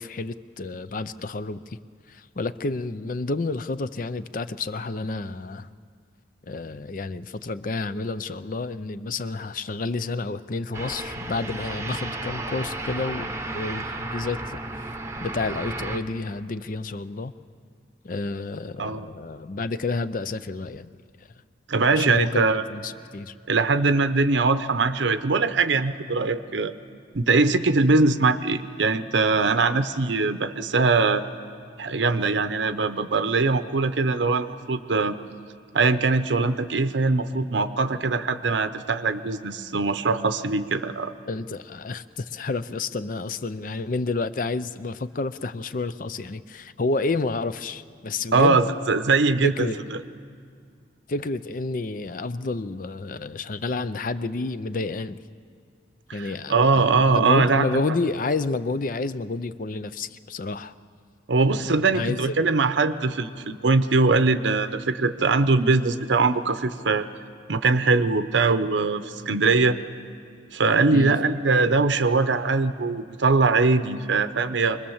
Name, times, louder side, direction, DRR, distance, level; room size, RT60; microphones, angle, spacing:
voice 1, 0.0-1.6 2.1-5.7 6.5-14.9 15.2-17.3 18.0-20.9 21.9-23.3 41.3-48.7 49.4-49.8 51.1-55.2 56.1-60.7 61.5-62.3 70.9-71.1, left 3 dB, 45° left, 14 dB, 0.5 m, -30 dB
sound 1, 10.7-16.0, right 2 dB, 15° right, 0.9 m, -33 dB
voice 2, 21.7-22.6 23.5-26.7 27.1-31.2 31.8-35.2 35.7-41.1 48.3-50.0 56.1-57.8 61.3-67.1 67.5-69.8 70.5-74.8, right 3 dB, 80° right, 10 dB, 0.8 m, -22 dB
25.5 x 20.5 x 7.2 m, 2.2 s
head